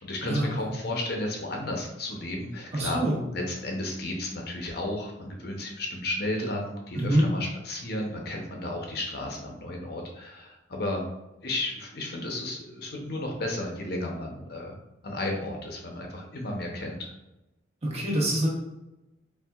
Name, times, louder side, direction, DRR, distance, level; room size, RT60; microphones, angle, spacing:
voice 1, 0.0-3.0 3.3-11.0 11.4-14.8 15.0-17.1, left 1 dB, 50° left, 1 dB, 0.7 m, -33 dB
voice 2, 2.7-3.2 7.0-7.3 17.8-18.5, right 1 dB, 30° right, -4 dB, 1.0 m, -25 dB
4.5 x 3.4 x 2.4 m, 0.95 s
head